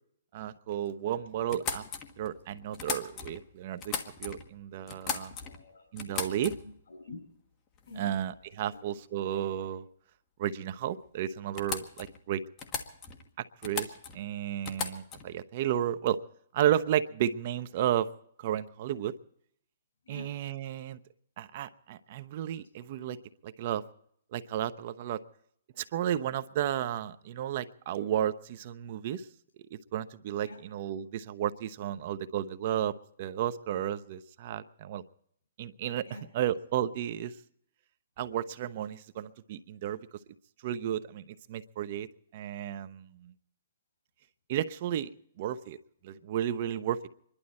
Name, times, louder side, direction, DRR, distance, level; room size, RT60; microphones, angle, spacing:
voice 1, 0.3-1.8 2.2-3.9 4.2-5.3 5.9-6.5 8.0-9.8 10.4-12.4 13.4-16.2 16.5-18.1 18.4-19.1 20.1-21.0 21.4-23.2 23.4-23.8 24.3-25.2 25.8-29.3 29.7-32.9 33.2-35.0 35.6-36.0 36.3-37.3 38.2-40.0 40.6-42.1 42.3-43.3 44.5-45.1 45.4-45.8 46.0-47.1, right 11 dB, 45° right, 13 dB, 0.8 m, -33 dB
sound 1, 1.5-3.4 3.8-4.5 4.9-5.6 6.0-6.8 7.8-8.0 8.3-8.8 10.7-10.8 11.1-11.2 11.6-12.2 12.6-13.3 13.6-14.2 14.7-15.3, left 6 dB, 20° left, 1.5 m, -38 dB
voice 2, 5.4-5.9 6.6-7.2 7.9-8.2 8.6-8.8 20.0-20.3 30.4-30.6 36.1-36.5, left 2 dB, 70° left, 6 dB, 5.4 m, -47 dB
27.0 x 11.5 x 4.2 m, 0.69 s
hypercardioid pair, 155°, 0 cm